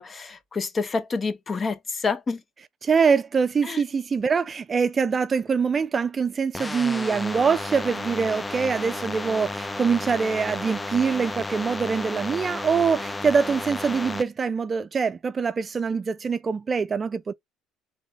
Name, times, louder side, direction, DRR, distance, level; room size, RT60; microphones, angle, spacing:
voice 1, 0.0-2.4 3.7-3.8, left 4 dB, 35° left, 1.1 m, -28 dB
voice 2, 2.8-17.3, right 5 dB, 35° right, 0.5 m, -24 dB
sound 1, 6.5-14.2, left 2 dB, 20° left, 0.6 m, -32 dB
3.8 x 3.4 x 3.3 m
hypercardioid pair, 70°, 0 cm